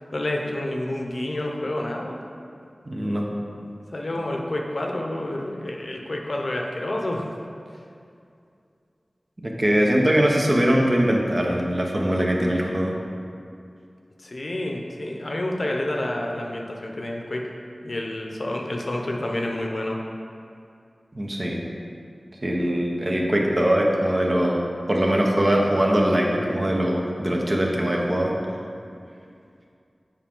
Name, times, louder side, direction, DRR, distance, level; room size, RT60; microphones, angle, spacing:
voice 1, 0.0-2.2 3.5-7.3 14.2-17.4 17.8-20.0, left 1 dB, 60° left, 1 dB, 0.7 m, -29 dB
voice 2, 2.9-3.3 9.4-13.0 21.1-21.6 22.4-24.6 24.9-28.3, equal, 40° right, -1 dB, 0.9 m, -22 dB
7.2 x 4.7 x 3.7 m, 2.4 s
wide cardioid pair, 60°, 0 cm